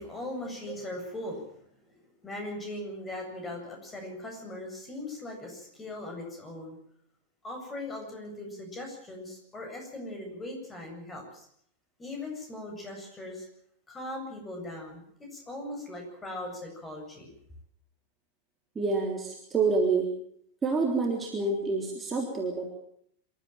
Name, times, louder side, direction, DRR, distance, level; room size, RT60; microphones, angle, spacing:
voice 1, 0.0-1.5 1.9-2.0 2.2-6.8 7.4-11.5 12.0-13.5 13.9-17.3, left 1 dB, 15° left, 2 dB, 8.0 m, -39 dB
voice 2, 18.7-20.1 20.6-22.7, right 4 dB, 15° right, 1 dB, 3.5 m, -27 dB
26.5 x 13.0 x 9.1 m, 0.69 s
figure-of-eight pair, 90°, 0 cm